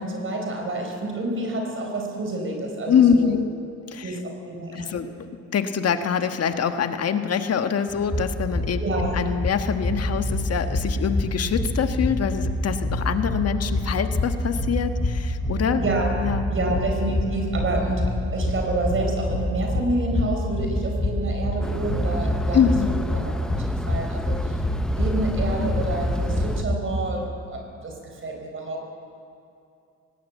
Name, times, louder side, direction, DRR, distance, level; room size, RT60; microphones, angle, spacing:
voice 1, 0.0-3.3 4.0-5.1 8.8-9.1 15.8-16.1 16.5-22.7 23.1-24.6 25.0-28.9, right 2 dB, 45° right, 2 dB, 4.5 m, -28 dB
voice 2, 2.9-3.5 3.9-4.2 4.7-8.8 9.1-15.8 16.2-16.4 22.5-22.9, left 7 dB, 55° left, 8 dB, 1.4 m, -24 dB
sound 1, 7.9-26.8, left 1 dB, 20° left, 5.3 m, -27 dB
sound 2, 21.6-26.6, left 1 dB, ahead, 0.6 m, -31 dB
18.5 x 17.5 x 8.2 m, 2.5 s
cardioid pair, 90°, 30 cm